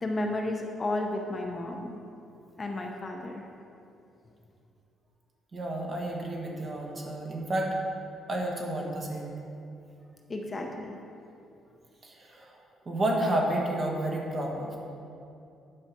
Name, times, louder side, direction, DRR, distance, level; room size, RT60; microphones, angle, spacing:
voice 1, 0.0-2.0 2.6-3.5 10.3-10.9, left 2 dB, 20° left, 2 dB, 0.7 m, -32 dB
voice 2, 5.5-7.8 8.3-9.4 12.0-12.6 12.8-14.8, right 1 dB, 25° right, -1 dB, 1.3 m, -31 dB
9.9 x 5.6 x 5.9 m, 2.7 s
cardioid pair, 170°, 0 cm